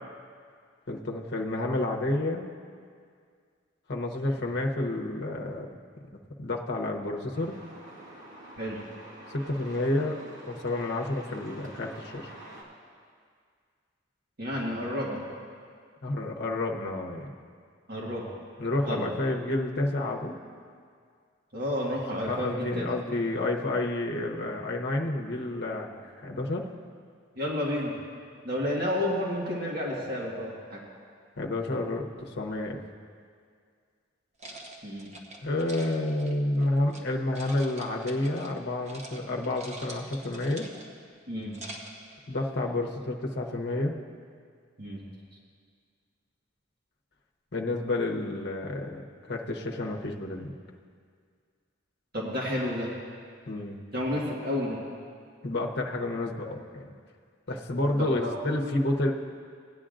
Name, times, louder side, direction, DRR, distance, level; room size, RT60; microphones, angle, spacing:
voice 1, 0.9-2.5 3.9-5.7 6.1-7.6 9.3-10.2 10.4-12.3 16.0-17.4 18.6-20.4 22.3-26.7 31.4-32.8 35.4-40.7 42.3-44.0 47.5-50.5 53.5-53.8 55.4-56.9 57.5-59.1, left 2 dB, 60° left, 1 dB, 0.9 m, -30 dB
Truck, 7.3-12.6, right 1 dB, 75° right, 2.1 m, -47 dB
voice 2, 14.4-15.3 17.9-18.2 18.9-19.1 21.5-22.8 27.3-28.0 28.4-30.8 34.8-35.1 41.3-41.6 44.8-45.0 52.1-52.9 53.9-54.8 58.0-58.4, left 1 dB, 55° right, -4 dB, 1.6 m, -31 dB
sound 1, 34.4-37.0 37.3-38.6 38.8-39.2 39.4-41.0 41.4-42.0, right 2 dB, 35° right, 1.1 m, -45 dB
17.5 x 9.9 x 2.5 m, 2.1 s
head